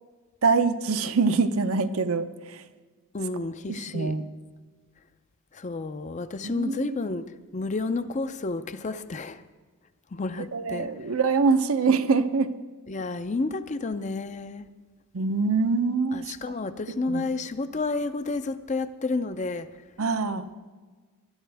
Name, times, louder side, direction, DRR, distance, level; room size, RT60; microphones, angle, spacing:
voice 1, 0.4-2.6 3.7-4.2 6.4-7.0 10.5-12.6 15.1-16.2 16.9-17.3 20.0-20.5, right 4 dB, 70° right, 9 dB, 0.7 m, -24 dB
voice 2, 3.1-4.2 5.5-7.2 7.5-9.4 10.1-10.9 12.9-14.7 16.1-19.7, left 3 dB, 30° left, 11 dB, 0.5 m, -30 dB
20.0 x 11.0 x 3.4 m, 1.4 s
head